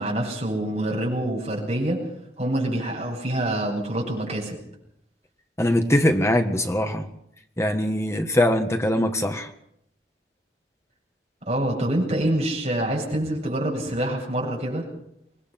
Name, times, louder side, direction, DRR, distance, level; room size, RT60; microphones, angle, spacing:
voice 1, 0.0-2.0 2.4-4.6 11.5-14.9, right 1 dB, 40° right, -1 dB, 8.0 m, -26 dB
voice 2, 5.6-7.1 7.6-9.5, left 1 dB, 15° left, 5 dB, 1.6 m, -22 dB
25.0 x 20.5 x 5.9 m, 0.75 s
head